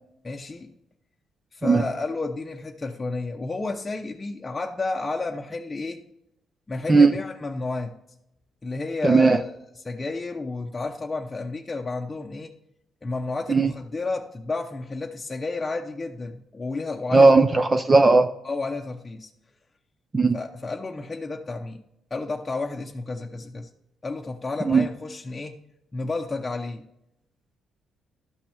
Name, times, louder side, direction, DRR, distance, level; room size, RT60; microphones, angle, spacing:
voice 1, 0.2-0.7 1.5-6.0 6.7-8.0 8.6-9.6 9.8-12.5 13.0-17.3 18.4-19.3 20.3-21.8 22.1-23.7 24.0-25.6 25.9-26.9, left 3 dB, 25° left, 0.7 m, -31 dB
voice 2, 9.0-9.4 13.5-13.7 17.1-18.3 20.1-20.4 24.6-24.9, right 3 dB, 25° right, 0.5 m, -16 dB
12.5 x 5.9 x 3.4 m
cardioid pair, 90°, 0 cm